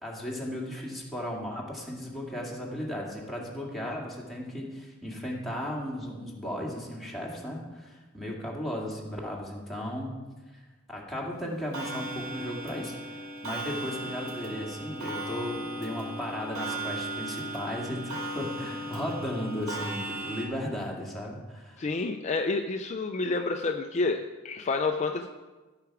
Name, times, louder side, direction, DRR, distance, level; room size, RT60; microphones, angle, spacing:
voice 1, 0.0-10.2 10.5-10.6 10.9-12.9 13.4-21.8, equal, ahead, -3 dB, 2.0 m, -35 dB
Clock, 11.7-20.5, right 1 dB, 90° right, 2.1 m, -36 dB
voice 2, 21.8-25.3, left 3 dB, 35° left, 5 dB, 0.4 m, -29 dB
16.0 x 5.8 x 4.7 m, 1.2 s
head